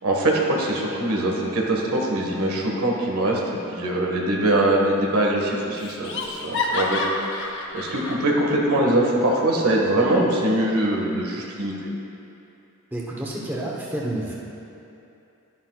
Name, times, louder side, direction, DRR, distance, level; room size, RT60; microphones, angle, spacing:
voice 1, 0.0-7.0 7.7-11.9, right 1 dB, 90° right, -1 dB, 1.5 m, -22 dB
Laughter, 4.5-5.0 5.3-5.4 5.8-8.2, left 2 dB, 55° left, 0.8 m, -29 dB
voice 2, 12.9-14.3, right 1 dB, 10° right, -4 dB, 0.9 m, -29 dB
12.0 x 10.0 x 2.4 m, 2.8 s
head